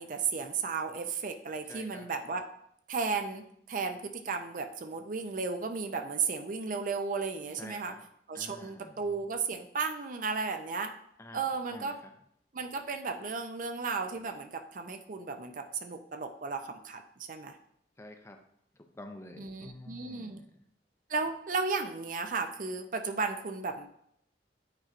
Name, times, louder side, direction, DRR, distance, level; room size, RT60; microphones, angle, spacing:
voice 1, 0.0-2.4 2.9-7.9 8.3-10.9 11.3-12.0 12.5-17.0 17.3-17.6 19.4-20.4 21.1-23.9, right 4 dB, 50° right, 7 dB, 0.5 m, -34 dB
voice 2, 1.7-2.1 7.6-8.0 8.3-8.9 11.2-11.4 11.7-12.1 18.0-18.4 18.7-20.5, left 1 dB, 15° left, 5 dB, 0.5 m, -48 dB
8.8 x 4.4 x 2.5 m, 0.71 s
head